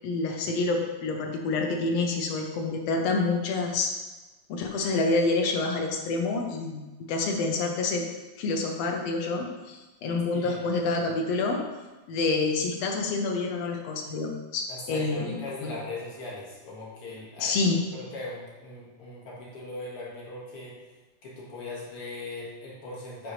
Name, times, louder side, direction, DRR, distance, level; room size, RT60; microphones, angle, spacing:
voice 1, 0.0-3.9 4.5-8.1 8.4-11.6 12.1-15.7 17.4-17.8, left 3 dB, 70° left, 2 dB, 1.8 m, -28 dB
voice 2, 14.7-20.8 21.2-23.3, left 2 dB, 50° left, -6 dB, 2.6 m, -39 dB
9.3 x 5.2 x 3.2 m, 1.2 s
omnidirectional pair, 3.4 m